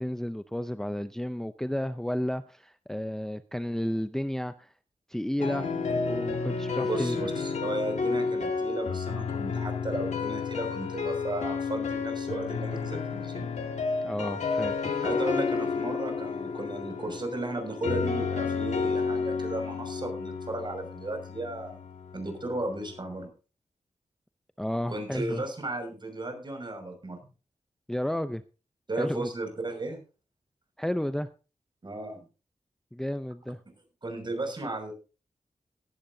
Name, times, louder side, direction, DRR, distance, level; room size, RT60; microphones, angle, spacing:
voice 1, 0.0-4.7 5.1-5.7 6.1-7.2 14.0-14.9 24.6-25.4 27.9-28.4 29.0-29.3 30.8-31.3 32.9-33.6, left 1 dB, 5° left, 11 dB, 0.6 m, -32 dB
sound 1, 5.4-23.2, left 5 dB, 85° left, 1.9 m, -31 dB
voice 2, 6.8-13.5 15.0-21.8 22.1-23.3 24.9-27.2 28.9-30.0 31.8-32.2 34.0-34.9, right 2 dB, 40° right, 4 dB, 6.3 m, -35 dB
18.0 x 12.0 x 2.8 m, 0.34 s
cardioid pair, 70°, 12 cm